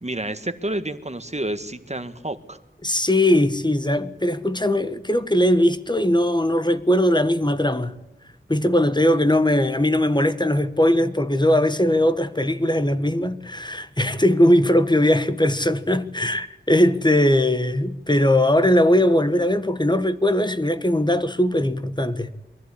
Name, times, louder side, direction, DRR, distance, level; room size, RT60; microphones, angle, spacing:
voice 1, 0.0-2.6, right 1 dB, 35° right, 1.7 m, -29 dB
voice 2, 2.8-8.0 8.5-22.3, left 1 dB, 20° left, 1.4 m, -20 dB
22.5 x 15.0 x 9.9 m
wide cardioid pair, 50°, 20 cm